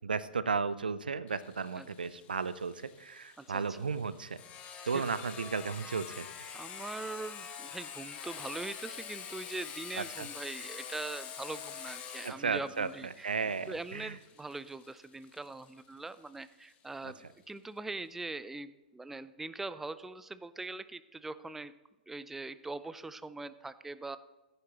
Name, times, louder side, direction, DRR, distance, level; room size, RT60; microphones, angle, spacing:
voice 1, 0.0-4.4 4.9-6.6 10.0-10.3 12.2-14.1 17.0-17.1, right 5 dB, 75° right, 16 dB, 0.5 m, -34 dB
Sawing, 1.3-16.7, left 7 dB, 30° left, 1.2 m, -46 dB
voice 2, 3.4-3.8 4.9-5.1 6.5-13.3 13.7-17.2 17.5-21.7 22.1-24.2, right 3 dB, 5° right, 14 dB, 0.4 m, -42 dB
15.5 x 9.7 x 3.0 m, 1.1 s
figure-of-eight pair, 105°, 5 cm